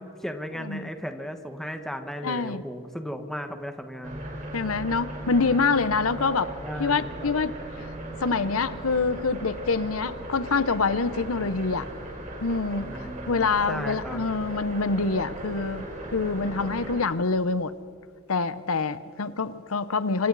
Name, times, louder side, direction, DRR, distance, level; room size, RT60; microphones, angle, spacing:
voice 1, 0.0-4.3 6.6-7.3 12.8-14.2, equal, ahead, 6 dB, 1.4 m, -36 dB
voice 2, 0.6-0.9 2.2-2.6 4.5-6.5 6.8-7.5 7.8-7.9 8.2-11.9 12.4-17.7 18.3-20.3, left 4 dB, 80° left, 14 dB, 0.8 m, -26 dB
sound 1, 4.0-17.0, right 1 dB, 35° right, 4.1 m, -38 dB
27.0 x 26.0 x 4.1 m, 2.2 s
head